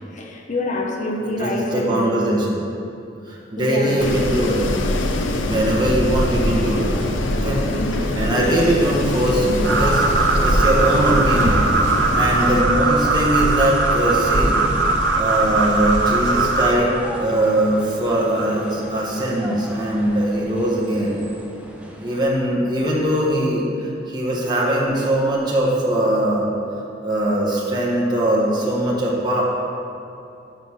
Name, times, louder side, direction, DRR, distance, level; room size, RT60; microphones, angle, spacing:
voice 1, 0.0-2.2 3.6-4.3 7.8-8.6, left 1 dB, 40° left, 0 dB, 0.7 m, -27 dB
voice 2, 1.3-2.6 3.3-4.6 5.3-6.9 7.3-7.7 8.1-10.0 10.4-11.7 12.1-14.6 15.2-21.2 22.0-26.5 27.0-29.4, right 1 dB, 25° right, -4 dB, 1.1 m, -21 dB
Wind, 4.0-12.6, left 1 dB, 80° left, 0.6 m, -24 dB
sound 1, 6.5-22.3, equal, 5° right, 0.6 m, -37 dB
sound 2, 9.6-16.7, right 2 dB, 75° right, 0.7 m, -19 dB
5.7 x 5.1 x 6.3 m, 2.7 s
head